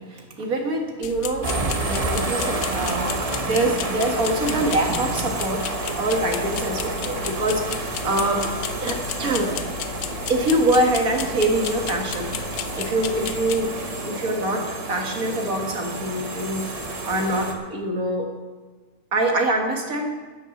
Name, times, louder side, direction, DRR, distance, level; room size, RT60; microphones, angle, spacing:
voice 1, 0.0-1.5 1.9-9.6 10.3-13.7 14.1-18.3 19.1-20.1, right 1 dB, 65° right, 2 dB, 2.3 m, -25 dB
sound 1, 1.0-13.7, left 9 dB, 80° left, 1.2 m, -34 dB
sound 2, 1.4-17.5, right 2 dB, 25° right, 1.1 m, -30 dB
10.0 x 9.7 x 7.2 m, 1.3 s
omnidirectional pair, 1.6 m